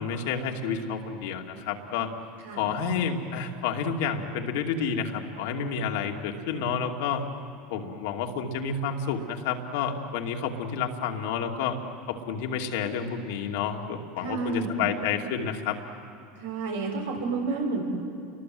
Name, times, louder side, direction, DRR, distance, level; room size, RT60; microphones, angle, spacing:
voice 1, 0.0-2.1 2.5-7.2 7.7-11.8 12.1-15.8, left 6 dB, 75° left, 3 dB, 2.6 m, -30 dB
voice 2, 14.2-14.8 16.4-17.8, right 4 dB, 90° right, 0 dB, 6.5 m, -30 dB
29.0 x 22.5 x 7.9 m, 2.4 s
hypercardioid pair, 100°, 0 cm